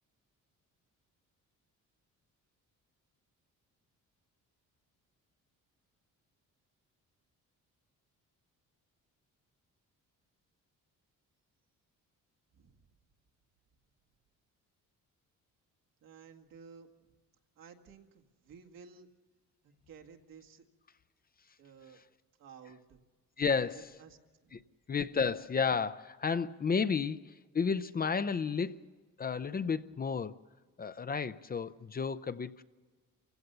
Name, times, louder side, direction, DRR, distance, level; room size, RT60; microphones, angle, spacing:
voice 1, 12.5-12.9 16.0-17.1 17.6-19.1 19.6-20.7 21.6-22.0 22.4-23.0 24.0-24.2 24.4-24.7, right 6 dB, 80° right, 2.0 m, -55 dB
voice 2, 23.4-23.8 24.5-24.6 24.9-28.8 29.2-30.4 30.8-32.6, left 5 dB, 25° left, 0.6 m, -32 dB
28.0 x 16.0 x 6.8 m
cardioid pair, 115°, 33 cm